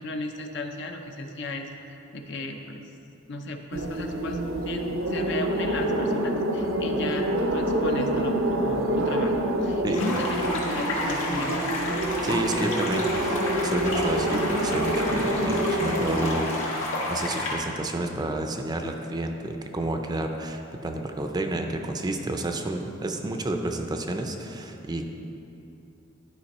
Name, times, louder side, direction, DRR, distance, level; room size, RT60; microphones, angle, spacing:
voice 1, 0.0-2.8 3.3-9.3 9.6-10.4 10.7-11.6, left 2 dB, 60° left, 4 dB, 0.7 m, -35 dB
sound 1, 3.7-16.3, right 1 dB, 75° right, 0.7 m, -27 dB
sound 2, 9.9-17.5, left 1 dB, 75° left, 1.7 m, -30 dB
voice 2, 12.2-25.0, right 1 dB, 20° right, 4 dB, 0.5 m, -30 dB
11.5 x 5.2 x 4.2 m, 2.8 s
head